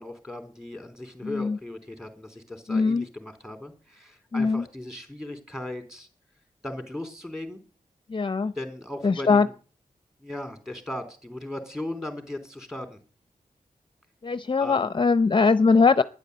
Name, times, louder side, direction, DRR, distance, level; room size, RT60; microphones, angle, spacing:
voice 1, 0.0-6.1 6.6-7.6 8.6-9.5 10.2-13.0 14.6-14.8, left 1 dB, 5° right, 7 dB, 3.6 m, -37 dB
voice 2, 1.2-1.6 2.7-3.1 4.3-4.7 8.1-8.5 9.0-9.5 14.2-16.0, left 4 dB, 35° left, 15 dB, 0.6 m, -21 dB
12.0 x 10.5 x 8.1 m, 0.39 s
wide cardioid pair, 95°, 14 cm